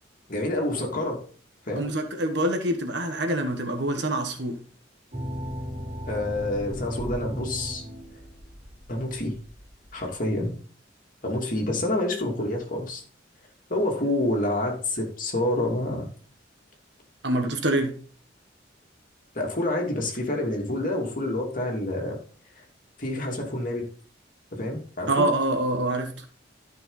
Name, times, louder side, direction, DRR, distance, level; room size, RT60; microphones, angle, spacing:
voice 1, 0.3-1.2 1.7-1.8 6.1-7.8 8.9-9.3 9.9-10.5 11.2-13.0 13.7-16.1 19.3-22.2 23.0-23.8 24.5-25.3, left 1 dB, 45° left, 0 dB, 2.5 m, -28 dB
voice 2, 1.8-4.6 17.2-18.0 25.1-26.2, right 1 dB, 60° right, 5 dB, 1.4 m, -25 dB
sound 1, 5.1-10.2, equal, 35° right, 4.2 m, -36 dB
12.0 x 5.6 x 3.9 m, 0.43 s
head